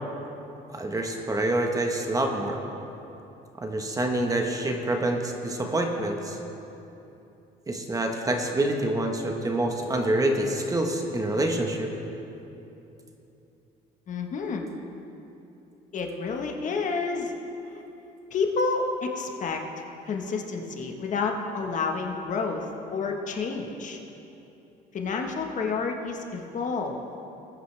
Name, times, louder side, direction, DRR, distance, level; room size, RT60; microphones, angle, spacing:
voice 1, 0.7-2.6 3.6-6.4 7.7-11.9, right 1 dB, 20° right, 3 dB, 1.3 m, -26 dB
voice 2, 14.1-14.7 15.9-17.3 18.3-19.6 20.1-24.0 24.9-27.0, left 4 dB, 50° left, 2 dB, 1.3 m, -29 dB
21.0 x 9.2 x 3.4 m, 2.9 s
cardioid pair, 110°, 17 cm